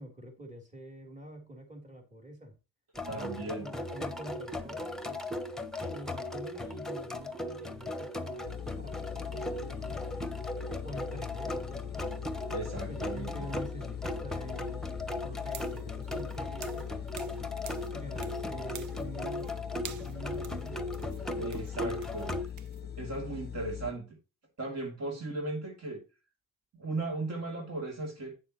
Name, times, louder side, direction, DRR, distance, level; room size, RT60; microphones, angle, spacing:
voice 1, 0.0-2.5 3.1-5.3 5.9-10.5 10.8-12.1 12.5-14.8 15.2-17.3 17.9-20.8, right 1 dB, 25° right, 3.3 m, -46 dB
sound 1, 2.9-22.5, left 1 dB, ahead, 1.0 m, -38 dB
voice 2, 3.1-3.7 12.5-13.5 21.4-22.3 23.0-24.2 24.6-26.0 26.7-28.3, right 2 dB, 60° right, 2.7 m, -37 dB
sound 2, 8.4-23.9, left 9 dB, 35° left, 0.4 m, -41 dB
sound 3, 15.5-17.4 17.7-18.4 18.7-19.5 19.8-22.8, right 9 dB, 75° right, 0.9 m, -48 dB
9.3 x 6.8 x 3.0 m
cardioid pair, 90°, 30 cm